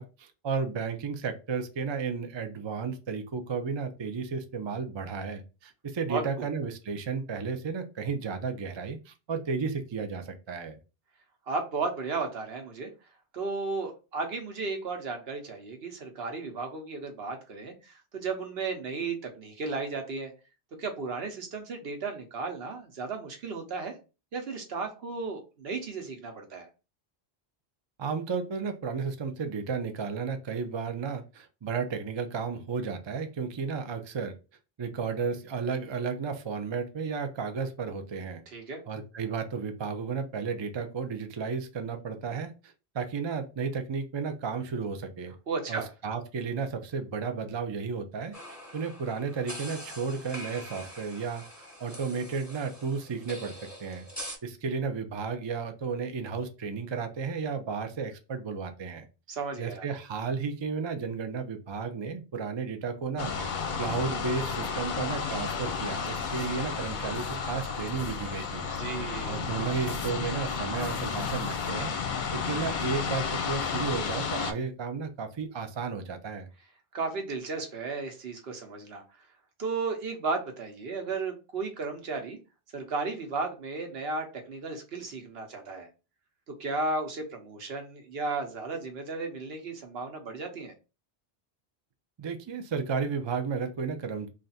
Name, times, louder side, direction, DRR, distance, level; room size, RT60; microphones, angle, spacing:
voice 1, 0.0-10.8 28.0-34.4 34.8-38.4 38.9-45.3 45.7-48.3 48.7-54.1 54.4-59.1 59.6-68.7 69.3-71.9 72.3-76.5 92.2-94.3, right 5 dB, 40° right, 7 dB, 0.4 m, -33 dB
voice 2, 6.1-6.5 11.5-12.9 13.3-20.3 20.8-24.0 24.3-26.7 38.5-38.8 45.5-45.9 59.3-59.8 68.8-69.4 76.9-79.0 79.6-82.4 82.7-85.9 86.5-90.7, right 4 dB, 75° right, 5 dB, 1.1 m, -34 dB
sound 1, 48.3-54.4, equal, 15° left, 1.0 m, -44 dB
sound 2, 63.2-74.5, left 5 dB, 55° left, 0.7 m, -32 dB
3.3 x 2.5 x 4.0 m, 0.31 s
omnidirectional pair, 1.1 m